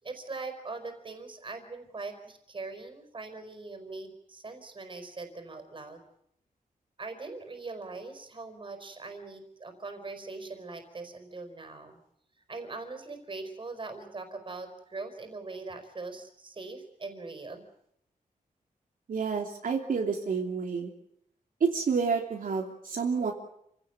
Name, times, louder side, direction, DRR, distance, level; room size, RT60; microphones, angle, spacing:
voice 1, 0.0-6.0 7.0-12.0 12.5-17.6, right 3 dB, 35° right, 7 dB, 4.8 m, -41 dB
voice 2, 19.1-20.9 21.6-23.3, right 5 dB, 70° right, 1 dB, 3.0 m, -29 dB
28.5 x 17.0 x 9.4 m, 0.74 s
wide cardioid pair, 145°, 15 cm